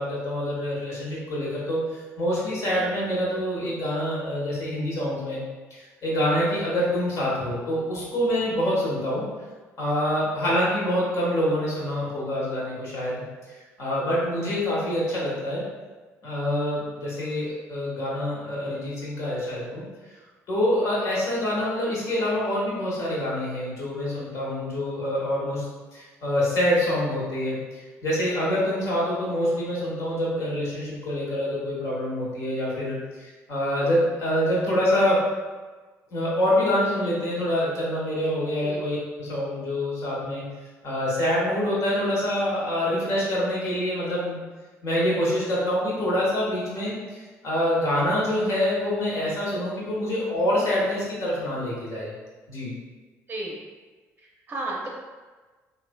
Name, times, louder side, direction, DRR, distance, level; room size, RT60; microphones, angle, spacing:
voice 1, 0.0-1.8 2.2-5.4 5.7-9.2 9.8-13.2 13.8-15.6 16.2-19.8 20.5-25.6 25.9-35.2 36.1-40.4 40.8-44.4 44.8-52.1 52.5-52.7, left 1 dB, 60° left, -6 dB, 1.2 m, -26 dB
voice 2, 54.2-54.9, right 2 dB, 30° right, -3 dB, 0.6 m, -33 dB
3.0 x 2.5 x 2.2 m, 1.3 s
supercardioid pair, 75°, 6 cm